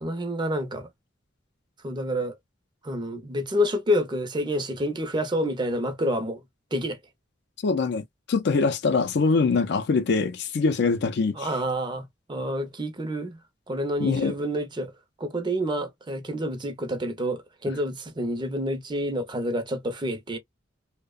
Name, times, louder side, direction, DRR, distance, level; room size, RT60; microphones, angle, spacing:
voice 1, 0.0-0.9 1.8-2.4 2.8-6.4 6.7-7.0 11.4-13.4 13.7-14.9 15.2-20.4, equal, 25° right, 0.6 m, -28 dB
voice 2, 7.6-11.5 14.0-14.4, left 4 dB, 60° left, 0.4 m, -23 dB
2.8 x 2.1 x 2.3 m
head